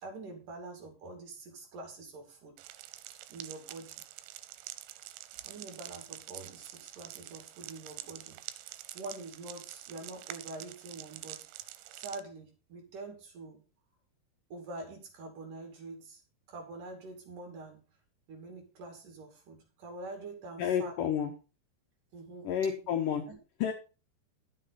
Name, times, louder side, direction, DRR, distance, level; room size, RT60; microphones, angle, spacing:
voice 1, 0.0-2.6 3.3-4.1 5.4-8.4 8.9-11.5 11.9-13.6 14.5-16.2 16.5-17.8 18.3-21.0 22.1-22.5 23.3-23.4, right 3 dB, 50° right, 3 dB, 3.6 m, -45 dB
sound 1, 2.6-12.2, right 14 dB, 90° right, 3.0 m, -46 dB
voice 2, 20.6-21.3 22.4-23.3 23.6-23.7, left 8 dB, 80° left, 5 dB, 1.9 m, -30 dB
12.0 x 7.5 x 4.1 m, 0.33 s
omnidirectional pair, 5.2 m